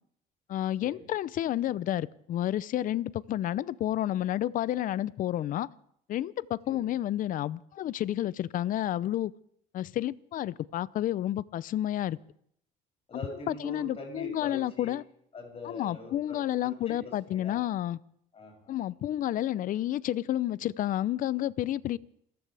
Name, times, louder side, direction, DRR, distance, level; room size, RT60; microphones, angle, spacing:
voice 1, 0.5-5.7 6.1-9.3 9.7-12.2 13.5-15.0 15.6-18.0 18.7-22.0, left 12 dB, 50° left, 0.6 m, -30 dB
voice 2, 13.1-15.0 15.3-17.6 18.3-18.8, left 2 dB, 35° left, 7.4 m, -43 dB
28.5 x 15.0 x 3.4 m
cardioid pair, 110°, 17 cm